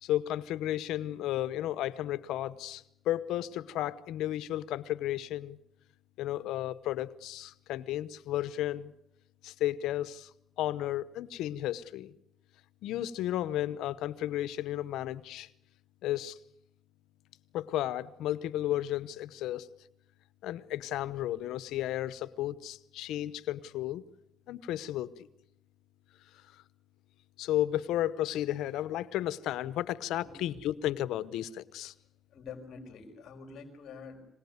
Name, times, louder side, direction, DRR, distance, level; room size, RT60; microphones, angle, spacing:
voice 1, 0.0-5.6 6.2-8.9 9.4-10.3 10.6-12.1 12.8-15.5 16.0-16.4 17.5-19.7 20.4-24.0 24.5-25.3 27.4-31.9, left 13 dB, 90° left, 16 dB, 0.9 m, -33 dB
voice 2, 30.2-30.6 32.3-34.2, left 5 dB, 70° left, 4 dB, 5.3 m, -47 dB
25.5 x 18.5 x 9.5 m, 0.81 s
cardioid pair, 90°, 0 cm